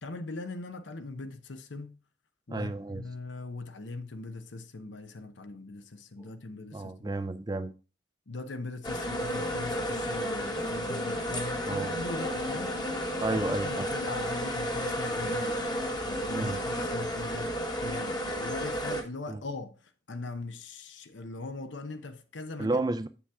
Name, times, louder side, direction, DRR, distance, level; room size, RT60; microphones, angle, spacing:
voice 1, 0.0-2.0 2.5-7.2 8.3-12.8 13.3-15.6 16.1-22.8, left 3 dB, 75° left, 0.8 m, -40 dB
voice 2, 2.5-3.0 6.7-7.7 11.7-11.9 13.2-13.9 16.3-16.6 19.3-19.4 22.6-23.1, right 2 dB, 20° right, 0.4 m, -31 dB
sound 1, 8.8-19.0, equal, 20° left, 1.1 m, -32 dB
7.6 x 7.1 x 3.5 m
head